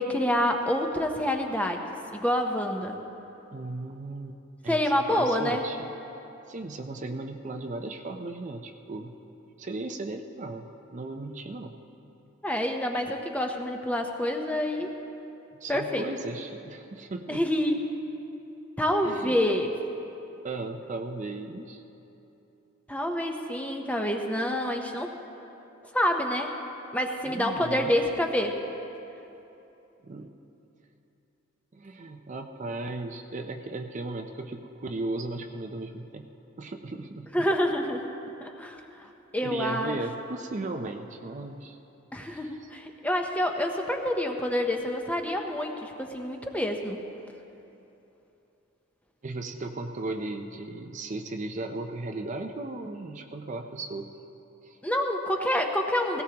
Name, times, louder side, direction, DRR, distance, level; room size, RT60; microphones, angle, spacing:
voice 1, 0.0-1.8 2.1-3.0 4.7-5.6 12.4-14.9 15.7-16.0 17.3-17.8 18.8-19.7 22.9-25.1 25.9-26.5 26.9-28.5 37.3-38.0 38.4-38.8 39.3-39.9 42.1-47.0 54.8-56.2, left 1 dB, 5° left, 3 dB, 0.7 m, -27 dB
voice 2, 3.5-4.4 4.6-5.9 6.5-9.2 9.6-11.8 15.6-17.4 19.0-19.4 20.4-21.8 27.2-27.9 30.0-30.4 31.7-36.3 36.6-37.3 39.4-41.8 42.2-42.7 49.2-54.1 54.6-54.8, right 2 dB, 35° right, 5 dB, 0.5 m, -36 dB
17.5 x 17.0 x 2.9 m, 3.0 s
head